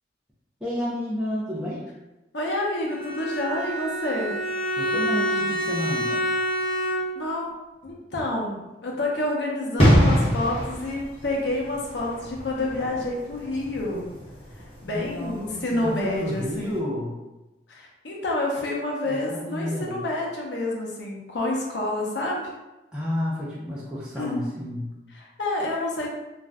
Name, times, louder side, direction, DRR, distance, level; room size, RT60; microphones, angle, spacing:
voice 1, 0.6-1.9 4.8-6.3 14.8-17.1 19.0-20.0 22.9-24.9, left 1 dB, 5° right, -9 dB, 0.5 m, -31 dB
voice 2, 2.3-4.3 7.2-7.5 7.8-14.1 14.8-16.8 17.7-22.5 24.2-24.4 25.2-26.1, left 1 dB, 80° left, -2 dB, 0.7 m, -28 dB
Bowed string instrument, 2.9-7.4, equal, 35° right, 0.9 m, -27 dB
sound 1, 9.8-16.3 16.5-16.7, equal, 35° left, 0.9 m, -25 dB
2.5 x 2.2 x 3.3 m, 1.0 s
head